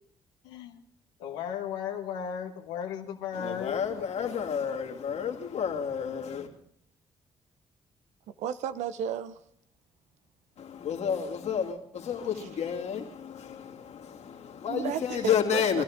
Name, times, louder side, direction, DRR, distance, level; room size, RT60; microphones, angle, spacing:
voice 1, 0.4-0.8 1.2-3.8 4.2-4.5, left 8 dB, 90° left, 1.5 m, -36 dB
voice 2, 3.3-6.5 10.6-15.8, left 7 dB, 65° left, 2.7 m, -31 dB
voice 3, 8.3-9.4 12.4-12.5 14.7-15.8, right 9 dB, 75° right, 0.9 m, -34 dB
24.0 x 13.0 x 3.7 m
hypercardioid pair, 50°, 12 cm